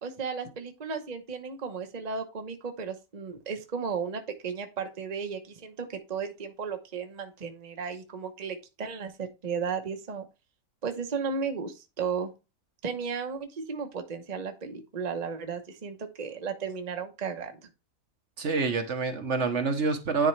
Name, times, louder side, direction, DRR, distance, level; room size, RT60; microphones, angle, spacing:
voice 1, 0.0-10.3 10.8-12.3 12.8-17.6, right 6 dB, 35° right, 5 dB, 1.0 m, -34 dB
voice 2, 18.4-20.3, right 4 dB, 60° right, 6 dB, 1.3 m, -27 dB
10.0 x 4.4 x 3.2 m, 0.28 s
omnidirectional pair, 1.4 m